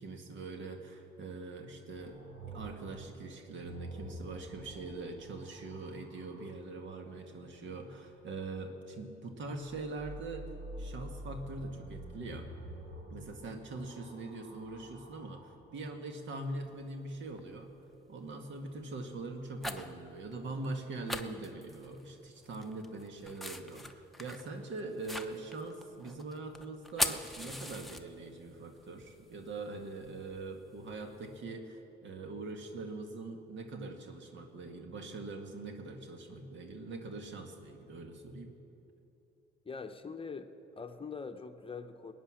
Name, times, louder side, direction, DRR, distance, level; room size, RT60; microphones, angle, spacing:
voice 1, 0.0-2.2 2.5-10.5 10.8-12.5 13.1-17.7 18.1-38.5, right 3 dB, 70° right, 5 dB, 1.8 m, -42 dB
sound 1, 2.0-6.6 9.6-15.7 16.6-17.3, right 1 dB, 90° right, 2.8 m, -48 dB
sound 2, 16.5-16.6 17.3-17.7 18.2-18.4 19.2-20.0 20.3-20.4 20.6-20.7 21.1-22.1 22.4-28.5 28.8-31.3, left 1 dB, ahead, 0.9 m, -40 dB
voice 2, 39.6-42.1, left 5 dB, 25° left, 8 dB, 0.9 m, -43 dB
20.5 x 9.3 x 6.4 m, 2.9 s
cardioid pair, 90°, 20 cm